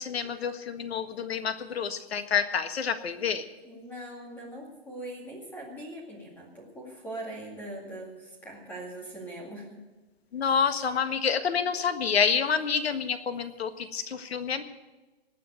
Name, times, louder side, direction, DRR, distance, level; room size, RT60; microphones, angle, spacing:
voice 1, 0.0-3.5 10.3-14.6, left 6 dB, 75° left, 10 dB, 1.6 m, -28 dB
voice 2, 3.6-9.8, right 1 dB, 5° left, -2 dB, 2.2 m, -41 dB
19.5 x 7.6 x 9.1 m, 1.1 s
hypercardioid pair, 180°, 31 cm